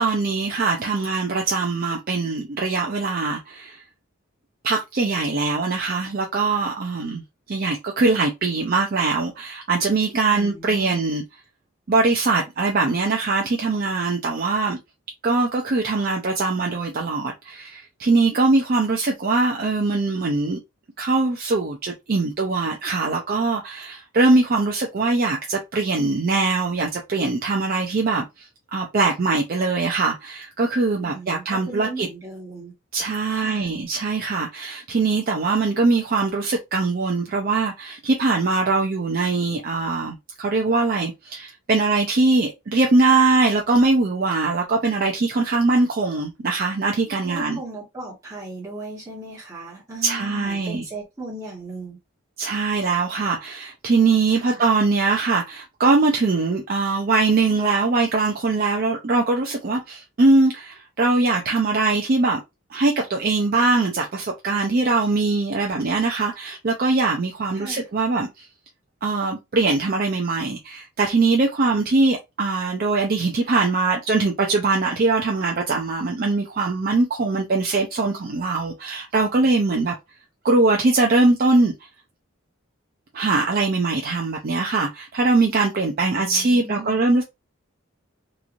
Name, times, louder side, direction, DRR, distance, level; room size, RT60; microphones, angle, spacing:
voice 1, 0.0-3.8 4.6-7.2 7.5-11.2 11.9-14.8 15.2-20.6 21.0-28.2 28.7-32.1 32.9-47.6 50.0-50.8 52.4-62.4 62.7-68.5 69.0-79.9 80.4-81.7 83.1-87.2, right 3 dB, 45° right, 0.4 m, -22 dB
voice 2, 10.3-11.0 31.0-32.7 33.3-33.7 47.2-52.0 54.3-54.6 67.5-67.8 86.0-87.0, right 2 dB, 15° right, 1.2 m, -37 dB
3.0 x 2.5 x 2.5 m
head